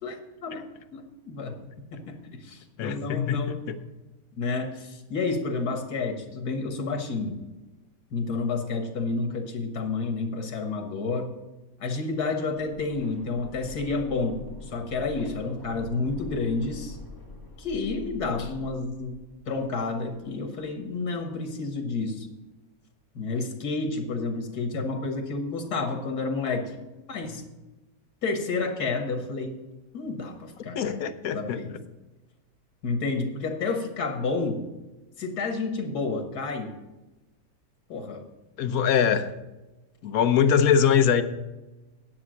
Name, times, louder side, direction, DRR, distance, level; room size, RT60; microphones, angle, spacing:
voice 1, 0.0-0.6 0.9-1.5 1.9-3.7 4.4-7.4 8.1-11.3 11.8-17.0 17.6-19.1 19.5-22.3 23.2-26.8 27.1-27.4 28.2-29.6 29.9-31.0 31.3-31.7 32.8-34.6 35.2-36.7 37.9-38.3 38.7-38.8, left 3 dB, 85° left, 5 dB, 2.0 m, -30 dB
voice 2, 2.8-3.7 30.7-31.6 38.6-39.3 40.0-41.2, left 7 dB, 70° left, 10 dB, 1.2 m, -23 dB
sound 1, 12.6-20.3 20.6-20.7, left 3 dB, 15° left, 1.3 m, -44 dB
9.9 x 8.3 x 6.3 m, 1.1 s
omnidirectional pair, 1.6 m